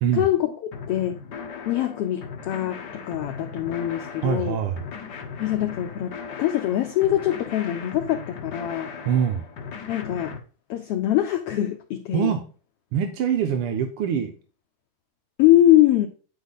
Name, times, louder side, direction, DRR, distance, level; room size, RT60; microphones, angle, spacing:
voice 1, 0.1-1.1 1.7-4.6 5.4-8.9 9.9-10.4 10.7-12.3 15.4-16.1, left 13 dB, 85° left, 1.3 m, -23 dB
sound 1, 0.7-10.4, left 5 dB, 70° left, 1.0 m, -38 dB
voice 2, 4.2-4.9 9.0-9.5 12.1-12.5 12.9-14.3, right 8 dB, 75° right, 1.3 m, -24 dB
9.8 x 5.0 x 4.0 m
omnidirectional pair, 3.5 m